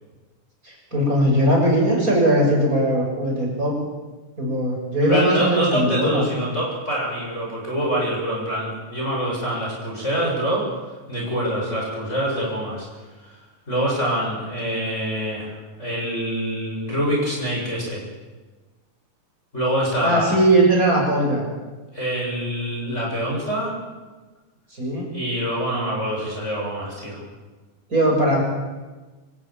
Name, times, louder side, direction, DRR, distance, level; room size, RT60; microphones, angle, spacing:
voice 1, 0.6-3.8 4.4-6.5 20.0-21.4 24.7-25.1 27.9-28.4, right 1 dB, 25° right, -1 dB, 7.3 m, -19 dB
voice 2, 5.0-10.6 11.1-12.9 13.2-13.4 13.7-18.0 19.5-20.3 21.9-23.7 25.1-27.2, right 1 dB, 20° left, -4 dB, 7.1 m, -25 dB
26.0 x 14.5 x 9.0 m, 1.3 s
omnidirectional pair, 3.7 m